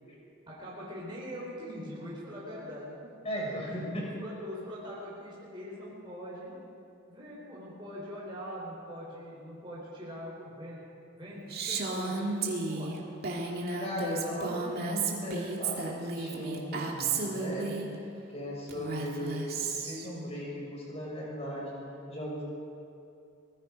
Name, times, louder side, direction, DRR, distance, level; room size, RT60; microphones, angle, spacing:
voice 1, 0.5-3.1 3.6-3.9 4.2-6.5 7.1-10.8 11.1-13.0 14.3-14.9 18.4-18.5, equal, 25° right, -6 dB, 4.3 m, -42 dB
voice 2, 3.2-4.0 13.8-17.8 18.3-19.4 19.8-21.8 22.1-22.4, equal, 30° left, -3 dB, 6.1 m, -37 dB
Female speech woman speaking, 11.5-17.9 18.7-20.1, right 4 dB, 50° right, 2.3 m, -33 dB
24.0 x 20.5 x 5.2 m, 2.6 s
head